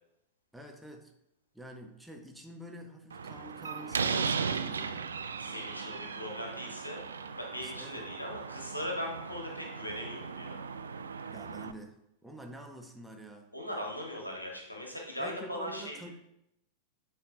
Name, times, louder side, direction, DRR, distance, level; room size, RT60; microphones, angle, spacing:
voice 1, 0.5-1.1 1.5-5.1 7.6-8.1 11.3-11.9 12.2-13.5 15.2-16.1, right 1 dB, 5° right, 2 dB, 0.8 m, -47 dB
Slam, 3.1-11.7, right 5 dB, 70° right, 0.3 m, -37 dB
voice 2, 5.4-7.0 7.3-10.6 13.5-16.1, left 1 dB, 85° left, 0 dB, 1.4 m, -39 dB
9.4 x 4.2 x 2.7 m, 0.80 s
figure-of-eight pair, 90°, 0 cm